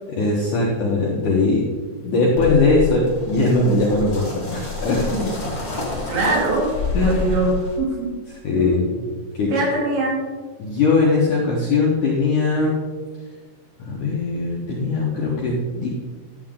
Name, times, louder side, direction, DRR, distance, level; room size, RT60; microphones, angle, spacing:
voice 1, 0.1-1.7 2.0-5.5 6.9-7.5 8.3-9.0 9.3-9.5 10.6-12.8 13.8-15.9, left 3 dB, 70° left, -3 dB, 2.0 m, -20 dB
sound 1, 2.4-7.8, left 3 dB, 20° left, 1.1 m, -28 dB
voice 2, 6.1-6.7 7.0-7.5 7.8-7.9 8.5-8.8 9.5-10.2, right 2 dB, 75° right, -4 dB, 5.0 m, -22 dB
12.5 x 8.7 x 3.8 m, 1.4 s
omnidirectional pair, 5.5 m